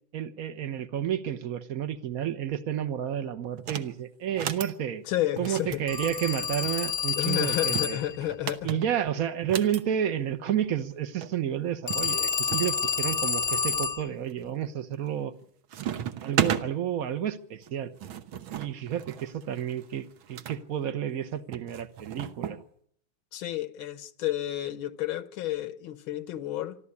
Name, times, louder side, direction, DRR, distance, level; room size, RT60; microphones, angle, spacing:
voice 1, 0.1-5.0 5.4-8.0 8.6-15.3 16.2-17.9 18.3-22.6, right 10 dB, 50° right, 1.4 m, -31 dB
sound 1, 3.6-3.9 4.3-4.8 5.4-6.7 7.5-9.8 10.9-11.0 11.2-11.3 11.9-12.7 13.3-13.8 14.3-14.7 15.0-15.4 15.7-16.7 17.6-20.6 21.5-22.6, right 9 dB, 80° right, 1.9 m, -34 dB
voice 2, 5.1-5.8 7.2-8.8 23.3-26.8, left 13 dB, 80° left, 1.9 m, -31 dB
Telephone, 5.9-8.2 11.9-14.1, left 6 dB, 40° left, 0.9 m, -29 dB
25.5 x 13.0 x 9.7 m
omnidirectional pair, 2.2 m